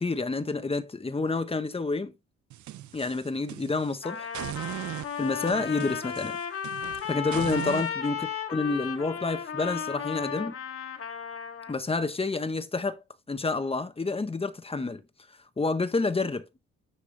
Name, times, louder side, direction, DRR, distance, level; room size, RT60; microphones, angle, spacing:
voice 1, 0.0-2.1 2.9-4.3 5.2-6.4 7.1-10.5 11.7-13.0 13.3-15.0 15.6-16.4, left 3 dB, 20° left, 1.3 m, -29 dB
sound 1, 2.5-3.9 4.3-7.9, right 13 dB, 70° right, 0.8 m, -39 dB
Trumpet, 4.0-11.8, left 7 dB, 50° left, 2.0 m, -34 dB
10.5 x 4.7 x 3.4 m
cardioid pair, 90°, 30 cm